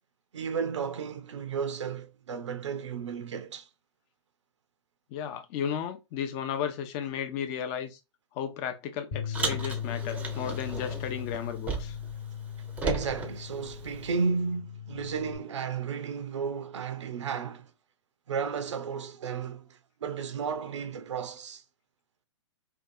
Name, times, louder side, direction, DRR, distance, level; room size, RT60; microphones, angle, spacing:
voice 1, 0.3-3.7 12.8-17.7 18.3-21.6, right 5 dB, 75° right, 0.5 m, -33 dB
voice 2, 5.1-8.0 8.3-12.0, left 8 dB, 35° left, 0.5 m, -34 dB
Bass guitar, 9.1-15.4, left 9 dB, 55° left, 1.1 m, -38 dB
Car, 9.3-12.2 12.4-14.2, right 4 dB, 10° right, 0.5 m, -35 dB
2.6 x 2.3 x 2.4 m
hypercardioid pair, 115°, 15 cm